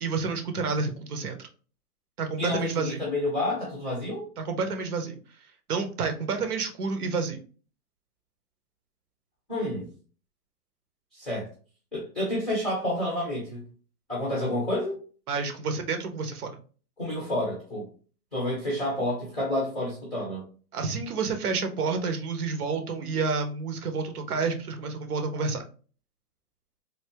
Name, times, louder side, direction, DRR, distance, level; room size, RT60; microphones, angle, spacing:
voice 1, 0.0-1.5 2.2-3.0 4.4-5.2 5.7-7.4 15.3-16.5 20.7-25.6, right 4 dB, 70° right, 6 dB, 1.0 m, -29 dB
voice 2, 2.4-4.3 9.5-9.9 11.1-11.5 11.9-13.7 14.1-15.0 17.0-17.9 18.3-20.5, left 1 dB, ahead, -6 dB, 0.5 m, -29 dB
3.3 x 2.8 x 2.8 m, 0.38 s
hypercardioid pair, 160°, 46 cm